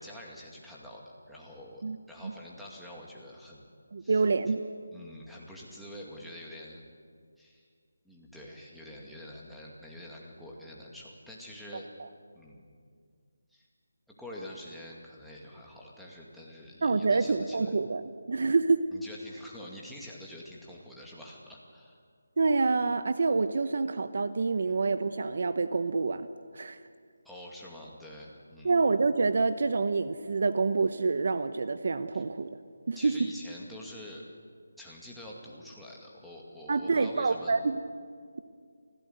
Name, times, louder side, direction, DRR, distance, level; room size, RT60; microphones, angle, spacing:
voice 1, 0.0-3.7 4.0-4.5 4.9-6.9 7.4-7.6 8.0-11.9 12.3-12.7 13.5-13.6 14.2-17.6 18.9-22.0 24.6-24.7 27.2-28.8 32.1-32.2 32.9-34.2 34.8-37.5, left 1 dB, ahead, -5 dB, 2.3 m, -46 dB
voice 2, 3.9-4.6 16.8-18.0 18.3-18.8 22.4-26.3 26.5-26.8 28.6-32.5 32.9-33.1 36.7-37.8, right 4 dB, 55° right, 11 dB, 0.9 m, -27 dB
24.5 x 16.0 x 8.1 m, 2.1 s
figure-of-eight pair, 165°, 0 cm